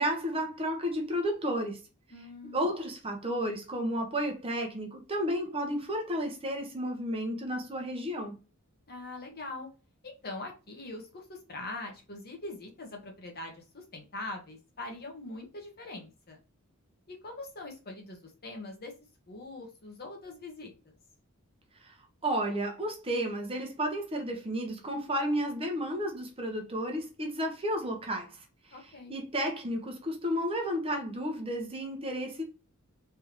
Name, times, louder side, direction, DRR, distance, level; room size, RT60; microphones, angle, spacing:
voice 1, 0.0-1.8 2.5-8.4 21.8-21.9 22.2-28.4 29.1-32.4, equal, 25° right, 0.9 m, -32 dB
voice 2, 2.1-2.7 8.9-9.7 10.0-16.4 17.1-18.9 19.3-20.9 28.7-29.2, left 2 dB, 45° left, 1.3 m, -42 dB
3.4 x 3.4 x 3.0 m
head